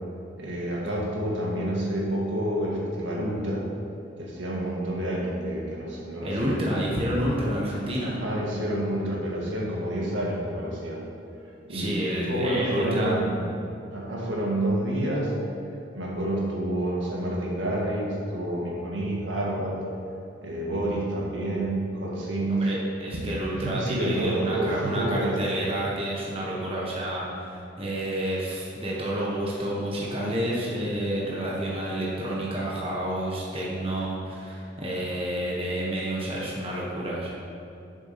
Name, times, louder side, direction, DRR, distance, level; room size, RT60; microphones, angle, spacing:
voice 1, 0.4-3.7 4.2-6.6 8.0-11.0 11.6-13.4 13.9-15.3 15.9-19.8 20.4-22.7 23.5-25.6, right 1 dB, 75° right, -3 dB, 1.9 m, -28 dB
voice 2, 6.2-8.2 11.7-13.1 22.5-37.3, right 1 dB, 30° right, -5 dB, 1.3 m, -29 dB
7.2 x 7.2 x 5.8 m, 2.7 s
head